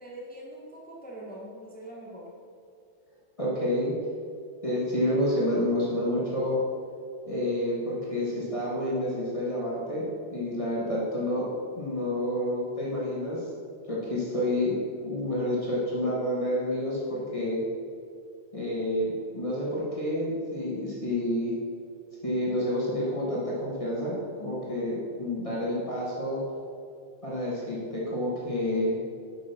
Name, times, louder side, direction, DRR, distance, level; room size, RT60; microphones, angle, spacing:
voice 1, 0.0-2.3, right 1 dB, 10° left, -4 dB, 1.1 m, -43 dB
voice 2, 3.4-3.9 4.6-6.6 7.3-13.5 13.9-14.8 15.0-17.6 18.5-21.5 22.2-24.1 24.4-26.4 27.2-29.0, left 1 dB, 30° left, -7 dB, 1.5 m, -29 dB
7.4 x 5.8 x 5.7 m, 2.3 s
omnidirectional pair, 1.2 m